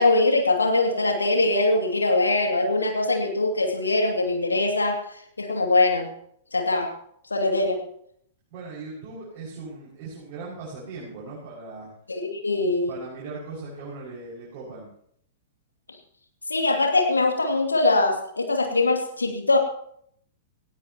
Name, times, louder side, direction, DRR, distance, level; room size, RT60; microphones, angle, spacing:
voice 1, 0.0-5.0 5.4-6.1 6.5-6.9 7.3-7.8 12.1-12.9 16.5-19.6, left 2 dB, 75° left, 3 dB, 2.4 m, -22 dB
voice 2, 8.5-11.9 12.9-14.9, right 3 dB, 40° right, -7 dB, 5.9 m, -38 dB
18.0 x 16.0 x 3.0 m, 0.68 s
figure-of-eight pair, 105°, 0 cm